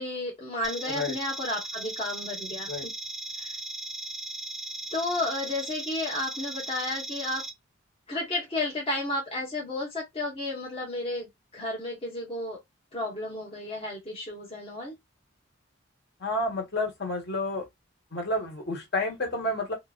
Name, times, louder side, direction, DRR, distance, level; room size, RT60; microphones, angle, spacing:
voice 1, 0.0-2.9 3.4-3.6 4.9-7.4 8.1-11.3 11.5-12.6 12.9-14.9, left 2 dB, 30° left, 0.9 m, -32 dB
sound 1, 0.6-7.5, right 1 dB, ahead, 0.4 m, -37 dB
voice 2, 16.2-17.7 18.1-19.7, left 1 dB, 55° left, 1.4 m, -30 dB
2.8 x 2.5 x 2.3 m
head